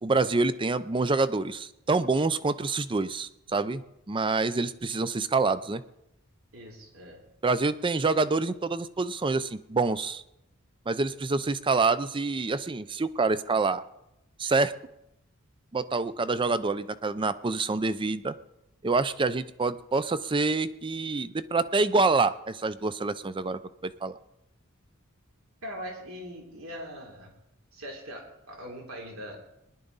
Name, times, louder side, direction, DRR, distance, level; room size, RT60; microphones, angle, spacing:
voice 1, 0.0-3.8 4.1-5.8 7.4-10.2 10.9-13.8 14.4-14.7 15.7-18.3 18.8-24.2, right 3 dB, 25° right, 14 dB, 0.5 m, -27 dB
voice 2, 6.5-7.2 25.6-27.3 27.7-29.4, equal, 75° right, 0 dB, 3.3 m, -41 dB
20.0 x 11.0 x 4.0 m, 0.86 s
head